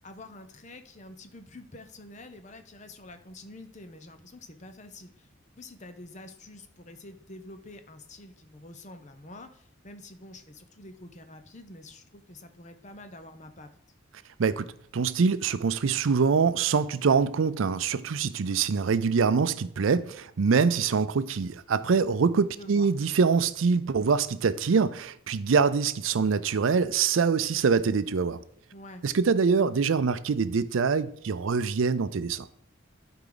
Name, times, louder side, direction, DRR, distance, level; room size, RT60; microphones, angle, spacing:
voice 1, 0.0-5.3 5.6-13.7 22.6-22.9 28.7-29.0, left 2 dB, 35° left, 0.8 m, -47 dB
voice 2, 14.9-28.4 29.0-32.5, right 5 dB, 80° right, 0.5 m, -24 dB
12.0 x 4.8 x 3.9 m
head